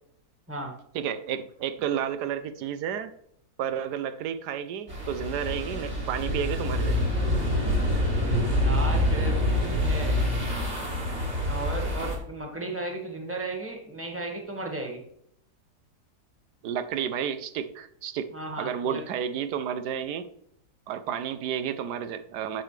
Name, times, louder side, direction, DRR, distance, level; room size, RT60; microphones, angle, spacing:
voice 1, 0.9-3.1 3.6-7.1 16.6-18.3 18.6-20.3 20.9-22.6, right 8 dB, 85° right, 11 dB, 1.2 m, -31 dB
sound 1, 4.9-12.2, left 1 dB, 45° right, 2.8 m, -26 dB
voice 2, 8.4-10.2 11.5-15.0 18.3-19.0, right 2 dB, 10° right, 1 dB, 1.6 m, -35 dB
9.8 x 6.8 x 3.2 m, 0.70 s
omnidirectional pair, 1.7 m